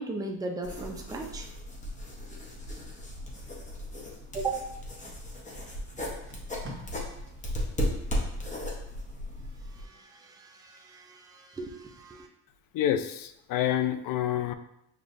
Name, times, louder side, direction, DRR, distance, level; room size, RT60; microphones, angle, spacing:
voice 1, 0.0-1.5 4.3-4.6 9.6-12.3, right 3 dB, 10° right, 2 dB, 0.4 m, -37 dB
sound 1, 0.6-9.9, equal, 15° left, 0.9 m, -36 dB
Packing tape duct tape, 3.3-4.9 5.6-5.7 6.0-9.0 9.4-9.7, equal, 30° right, 1.2 m, -50 dB
voice 2, 12.7-14.5, left 11 dB, 50° left, 9 dB, 0.4 m, -28 dB
6.5 x 2.5 x 2.5 m, 0.79 s
cardioid pair, 110°, 43 cm